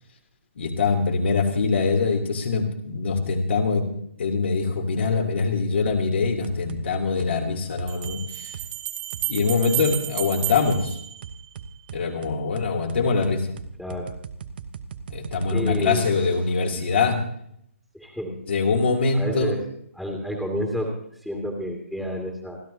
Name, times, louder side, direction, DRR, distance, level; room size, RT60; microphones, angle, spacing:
voice 1, 0.6-3.9 4.2-8.6 9.3-11.0 11.9-13.5 15.1-17.2 18.4-19.6, left 4 dB, 55° left, 2 dB, 3.3 m, -23 dB
sound 1, 5.9-6.0 6.4-6.8 7.2-7.4 7.8-8.2 8.5-8.7 9.1-9.5 9.9-10.0 10.5-10.9 11.2-16.5, right 6 dB, 45° right, 1.1 m, -38 dB
Bell, 6.2-6.3 7.9-11.8, right 15 dB, 25° right, 1.9 m, -32 dB
voice 2, 15.5-16.1 17.9-18.3 19.1-19.6 20.0-22.6, equal, 5° left, -1 dB, 2.4 m, -30 dB
29.0 x 13.0 x 2.9 m, 0.71 s
figure-of-eight pair, 140°, 7 cm